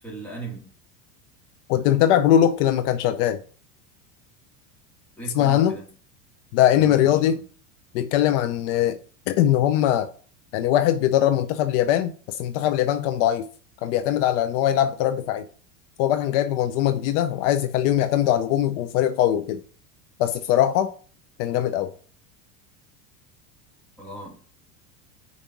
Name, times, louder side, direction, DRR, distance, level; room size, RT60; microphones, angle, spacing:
voice 1, 0.0-0.7 5.2-5.9 6.7-7.4 24.0-24.4, right 3 dB, 5° left, 2.3 m, -38 dB
voice 2, 1.7-3.4 5.4-5.8 6.5-7.4 7.9-9.0 9.3-10.1 10.5-13.4 13.8-15.4 16.0-19.6 20.2-20.9 21.4-21.9, left 11 dB, 65° left, 0.7 m, -21 dB
5.4 x 4.9 x 5.8 m
supercardioid pair, 150°, 39 cm